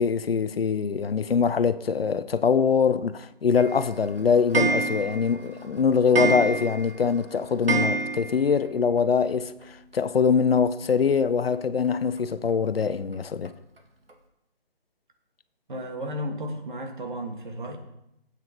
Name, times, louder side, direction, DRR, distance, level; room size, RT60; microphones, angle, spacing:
voice 1, 0.0-13.5, left 6 dB, 75° left, 0.7 m, -23 dB
Clock, 3.6-8.7 9.0-9.1 9.3-9.4 9.6-9.7 10.9-11.0 11.5-11.6 12.2-12.3 12.8-12.9 13.5-13.6 14.1-14.2, right 3 dB, 75° right, 1.8 m, -28 dB
voice 2, 15.7-17.8, equal, 55° right, 1.7 m, -33 dB
14.0 x 8.4 x 3.0 m
figure-of-eight pair, 155°, 30 cm